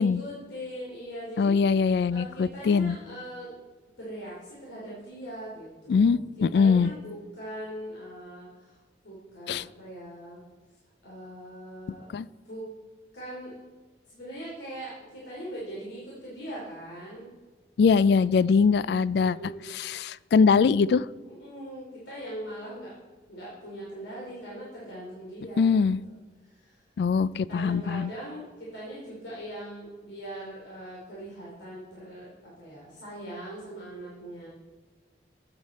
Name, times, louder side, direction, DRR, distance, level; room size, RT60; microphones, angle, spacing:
voice 1, 0.0-1.6 2.1-3.5 4.0-6.2 6.5-10.4 11.0-12.0 12.4-12.7 13.1-13.6 14.1-17.3 19.2-19.8 21.2-22.9 23.3-25.9 26.4-26.8 27.5-32.3 32.6-34.5, right 1 dB, 90° left, -6 dB, 2.9 m, -41 dB
voice 2, 1.4-3.0 5.9-6.9 9.5-9.6 12.1-12.3 17.8-21.1 25.6-26.0 27.0-28.1, left 5 dB, 65° left, 19 dB, 0.3 m, -22 dB
13.5 x 8.0 x 4.1 m, 1.4 s
head